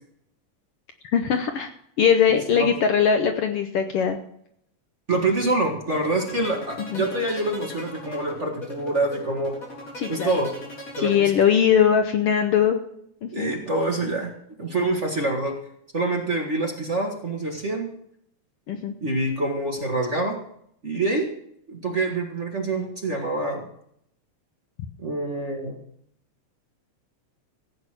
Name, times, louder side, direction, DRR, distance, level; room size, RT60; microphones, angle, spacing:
voice 1, 1.1-1.7 2.0-4.2 6.8-7.0 10.0-10.3 11.0-12.8 13.2-13.5 18.7-18.9, left 7 dB, 65° left, 6 dB, 1.6 m, -21 dB
voice 2, 5.1-9.5 10.1-10.5 11.0-11.3 13.3-14.3 14.6-15.5 15.9-17.9 19.0-20.4 20.8-21.3 21.7-23.7 25.0-25.8, right 2 dB, 30° right, 1 dB, 1.6 m, -26 dB
sound 1, 5.9-11.8, equal, 30° left, 4.4 m, -39 dB
16.0 x 8.6 x 6.0 m, 0.70 s
omnidirectional pair, 3.3 m